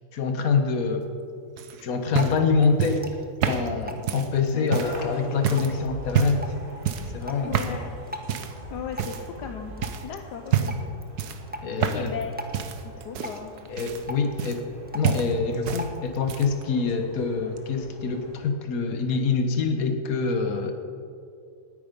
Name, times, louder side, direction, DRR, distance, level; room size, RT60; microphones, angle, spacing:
voice 1, 0.1-1.1 1.8-3.1 3.5-6.5 7.1-7.7 11.6-12.1 13.7-14.7 14.9-20.7, left 4 dB, 55° left, 6 dB, 1.6 m, -25 dB
sound 1, 1.6-5.0 5.4-5.7 6.1-6.5 6.8-7.2 7.5-7.8 8.3-8.6 9.0-9.5 9.8-10.0 10.5-10.9 11.2-12.2 12.5-14.8 15.0-15.9 16.1-16.6 17.6-17.7, right 9 dB, 70° right, 1.4 m, -28 dB
Drip, 1.8-16.3, equal, 15° right, 0.4 m, -43 dB
sound 2, 4.8-18.5, equal, 30° right, 2.2 m, -44 dB
voice 2, 7.5-7.9 8.7-9.8 10.0-10.8 11.8-12.3 12.8-13.6, left 7 dB, 75° left, 5 dB, 1.3 m, -36 dB
19.0 x 9.0 x 5.3 m, 2.5 s
omnidirectional pair, 1.8 m